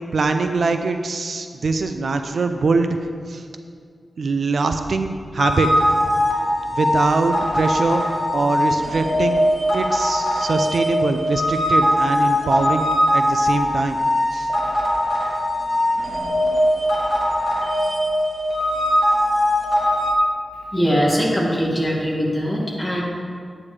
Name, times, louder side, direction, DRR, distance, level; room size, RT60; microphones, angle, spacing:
voice 1, 0.1-3.0 3.3-3.5 4.2-5.7 6.7-8.0 8.3-9.4 9.7-12.8 13.1-14.0 14.3-14.5, right 3 dB, 65° right, 6 dB, 0.5 m, -22 dB
sound 1, 5.4-20.1, left 1 dB, 35° left, 2.2 m, -21 dB
voice 2, 20.7-23.0, equal, 15° left, -5 dB, 2.1 m, -21 dB
11.5 x 8.6 x 3.3 m, 2.1 s
wide cardioid pair, 125°, 0 cm